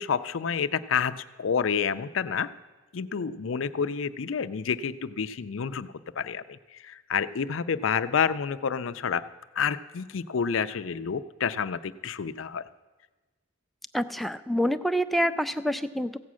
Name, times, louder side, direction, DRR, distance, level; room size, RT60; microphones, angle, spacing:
voice 1, 0.0-2.5 2.9-9.2 9.5-12.6, left 6 dB, 75° left, 13 dB, 0.5 m, -29 dB
voice 2, 13.9-16.2, equal, ahead, 9 dB, 0.3 m, -27 dB
15.0 x 8.4 x 6.2 m, 1.2 s
head